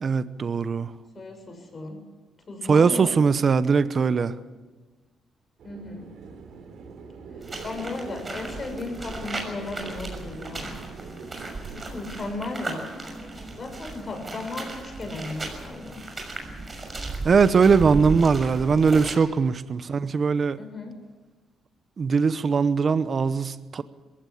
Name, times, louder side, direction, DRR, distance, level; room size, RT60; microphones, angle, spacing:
voice 1, 0.0-0.9 2.7-4.3 17.2-20.6 22.0-23.8, right 5 dB, 45° right, 0.9 m, -21 dB
voice 2, 1.1-2.0 2.5-3.1 5.6-6.1 7.4-10.7 11.7-12.9 13.6-16.0 19.8-20.1 20.6-20.9, left 2 dB, 35° left, 7.0 m, -35 dB
sound 1, 5.6-12.2, right 4 dB, 75° right, 3.4 m, -43 dB
sound 2, 7.4-19.2, right 3 dB, 25° right, 6.5 m, -36 dB
21.5 x 16.5 x 8.6 m
cardioid pair, 100°, 0 cm